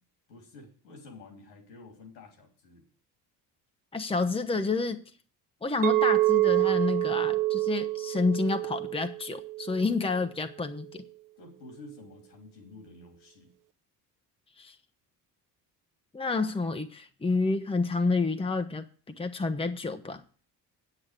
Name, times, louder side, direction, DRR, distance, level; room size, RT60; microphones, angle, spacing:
voice 1, 0.3-2.8 11.4-13.5, left 2 dB, 85° left, 3.2 m, -50 dB
voice 2, 3.9-5.0 5.6-11.0 14.6-14.7 16.1-18.8 19.2-20.2, left 3 dB, 10° left, 1.0 m, -29 dB
Chink clink, 5.8-10.1, right 18 dB, 45° right, 0.7 m, -27 dB
8.7 x 8.1 x 5.1 m
hypercardioid pair, 55°, 49 cm